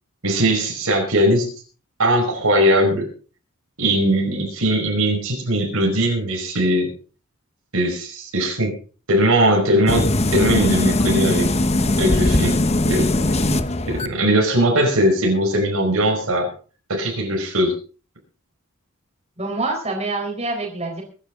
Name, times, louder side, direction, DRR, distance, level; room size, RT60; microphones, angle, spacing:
voice 1, 0.2-1.5 2.0-3.1 3.8-6.9 7.7-8.7 9.1-11.5 12.0-12.6 12.9-13.1 13.9-16.5 16.9-17.7, right 1 dB, 75° right, 0 dB, 5.2 m, -19 dB
sound 1, 9.9-14.1, left 2 dB, 30° left, 0.9 m, -20 dB
voice 2, 19.4-21.0, right 2 dB, 30° right, -1 dB, 4.3 m, -26 dB
23.0 x 10.5 x 3.8 m, 0.38 s
head